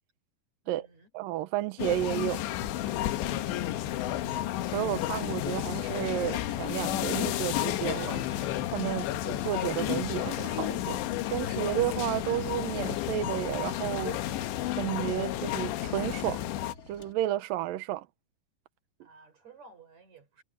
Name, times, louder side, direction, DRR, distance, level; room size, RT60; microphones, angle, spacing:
voice 1, 0.6-1.1 3.0-3.6 8.9-9.1 19.0-20.4, right 4 dB, 40° right, 6.4 m, -56 dB
voice 2, 1.1-2.4 4.7-8.4 8.7-11.0 11.3-14.2 14.8-16.4 16.9-18.1, right 13 dB, 75° right, 2.0 m, -32 dB
sound 1, 1.8-16.7, left 14 dB, 85° left, 3.4 m, -32 dB
sound 2, 2.6-17.1, left 3 dB, 30° left, 2.0 m, -48 dB
omnidirectional pair, 5.1 m